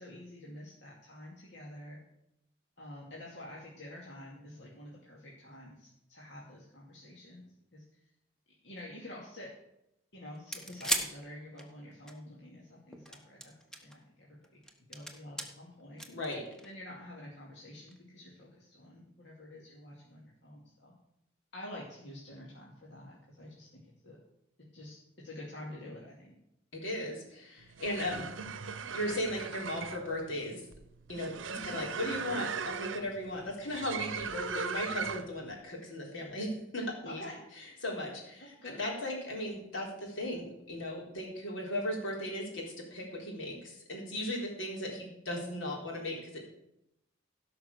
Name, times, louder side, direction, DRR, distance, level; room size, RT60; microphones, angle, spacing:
voice 1, 0.0-2.0 2.8-7.4 7.7-8.0 8.6-9.5 10.1-13.5 13.8-14.4 14.9-16.0 16.6-20.9 21.5-24.2 24.7-25.0 25.2-26.3 31.5-31.8 37.0-37.4 38.4-38.8, left 1 dB, 60° left, -5 dB, 2.4 m, -48 dB
sound 1, 10.3-12.1 12.9-14.0 14.4-15.5 16.0-16.8 17.9-18.0, right 1 dB, 5° left, 1.0 m, -36 dB
voice 2, 16.1-16.4 26.7-28.3 28.9-30.6 31.1-31.3 31.6-37.2 37.8-46.5, left 1 dB, 75° left, -2 dB, 4.1 m, -37 dB
sound 2, 27.6-35.4, right 6 dB, 75° right, 0.7 m, -39 dB
16.5 x 5.8 x 6.8 m, 0.84 s
head